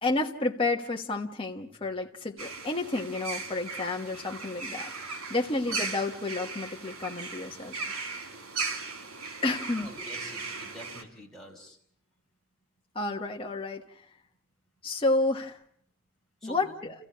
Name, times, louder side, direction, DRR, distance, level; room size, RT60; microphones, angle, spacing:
voice 1, 0.0-8.1 9.4-9.9 12.9-14.0 14.8-15.6 16.4-16.9, left 2 dB, 25° left, 1 dB, 1.3 m, -31 dB
sound 1, 2.4-11.0, right 4 dB, 85° right, 3.1 m, -37 dB
voice 2, 9.8-11.8 16.4-16.7, left 1 dB, ahead, -2 dB, 4.8 m, -46 dB
30.0 x 15.5 x 8.5 m, 0.67 s
head